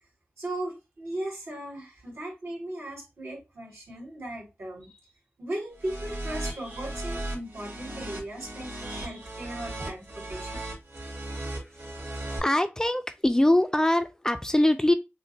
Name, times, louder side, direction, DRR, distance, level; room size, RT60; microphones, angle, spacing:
voice 1, 0.4-5.0 5.4-10.6, right 1 dB, 75° right, 2.4 m, -37 dB
sound 1, 5.8-12.4, right 1 dB, 55° right, 2.0 m, -36 dB
voice 2, 12.4-14.9, left 1 dB, 15° left, 0.4 m, -23 dB
6.4 x 2.2 x 2.6 m
wide cardioid pair, 80°, 4 cm